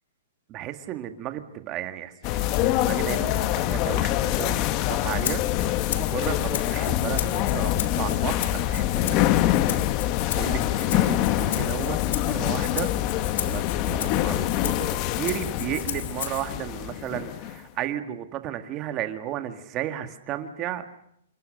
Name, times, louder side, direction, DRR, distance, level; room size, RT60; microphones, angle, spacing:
voice 1, 0.5-5.4 5.9-9.8 10.4-13.2 13.5-20.9, right 12 dB, 25° right, 8 dB, 1.9 m, -34 dB
sound 1, 2.2-17.6, left 13 dB, 30° left, 0.9 m, -25 dB
Rattle (instrument), 5.2-16.5, left 9 dB, 60° left, 2.8 m, -36 dB
27.5 x 24.0 x 6.6 m, 0.73 s
hypercardioid pair, 165°, 0 cm